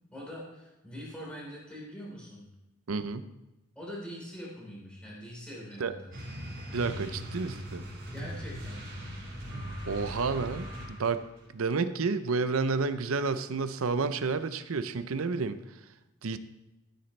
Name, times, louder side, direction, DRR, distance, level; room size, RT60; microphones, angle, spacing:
voice 1, 0.1-2.5 3.8-6.1 8.1-8.8, equal, 5° left, -5 dB, 3.5 m, -43 dB
voice 2, 2.9-3.2 5.8-5.9 6.7-7.8 9.9-11.2 11.5-15.6 16.2-16.4, right 4 dB, 80° right, 12 dB, 0.6 m, -30 dB
sound 1, 6.1-11.3, equal, 60° right, 4.2 m, -40 dB
14.0 x 8.3 x 3.2 m, 0.99 s
head